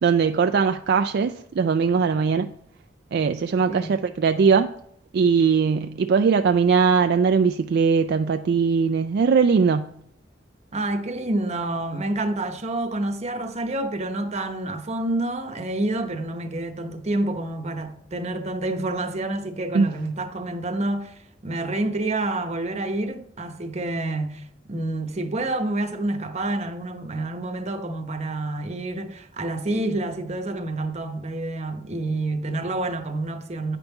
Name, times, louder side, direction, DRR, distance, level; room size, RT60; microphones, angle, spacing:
voice 1, 0.0-2.5 3.1-4.7 5.1-9.9 19.7-19.9, right 5 dB, 60° right, 0.3 m, -20 dB
voice 2, 10.7-24.4 24.7-33.8, right 2 dB, 35° right, 0.9 m, -28 dB
9.1 x 5.3 x 4.5 m
head